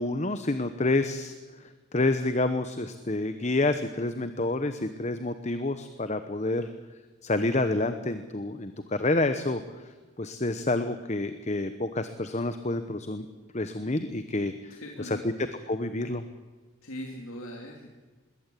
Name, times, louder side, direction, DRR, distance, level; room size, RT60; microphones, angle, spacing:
voice 1, 0.0-1.3 1.9-6.7 7.2-9.6 10.2-13.3 13.5-15.3 15.7-16.2, left 2 dB, 30° left, 10 dB, 0.9 m, -28 dB
voice 2, 14.7-15.2 16.8-17.9, equal, 75° left, 0 dB, 2.9 m, -40 dB
21.5 x 17.0 x 8.4 m, 1.3 s
head